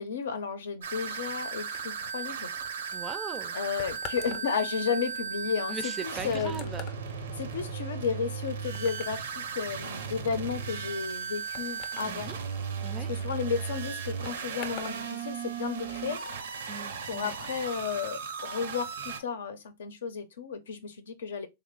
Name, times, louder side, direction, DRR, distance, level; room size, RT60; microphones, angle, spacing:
voice 1, 0.0-2.5 3.5-6.8 7.4-12.3 13.1-16.2 17.1-21.5, left 6 dB, 90° left, 0.6 m, -33 dB
sound 1, 0.8-19.2, right 6 dB, 85° right, 0.6 m, -36 dB
sound 2, 1.7-15.0 15.3-15.9, left 7 dB, 40° left, 0.5 m, -48 dB
voice 2, 2.9-3.5 5.7-6.9 12.1-12.4 12.8-13.1 16.7-17.4, right 5 dB, 20° right, 0.4 m, -39 dB
3.3 x 2.0 x 3.6 m
hypercardioid pair, 140°, 0 cm